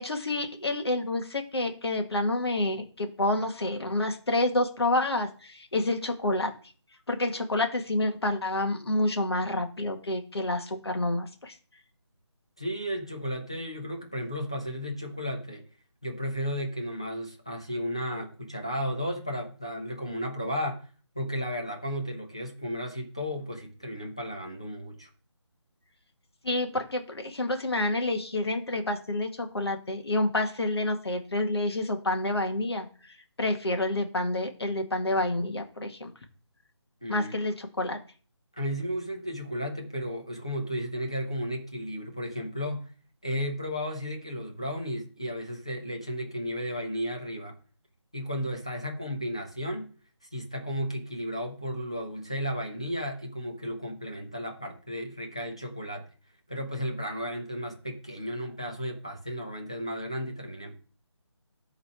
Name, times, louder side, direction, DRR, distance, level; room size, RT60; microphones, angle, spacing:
voice 1, 0.0-6.5 7.1-11.5 26.4-32.9 33.4-36.1 37.1-38.0, left 2 dB, 60° left, 5 dB, 1.9 m, -28 dB
voice 2, 12.6-15.6 16.0-20.8 21.1-25.1 37.0-37.4 38.6-42.9 43.2-47.6 48.1-49.9 50.3-56.0 56.5-60.8, equal, 10° left, 1 dB, 0.5 m, -34 dB
9.9 x 4.0 x 6.1 m, 0.40 s
figure-of-eight pair, 180°, 15 cm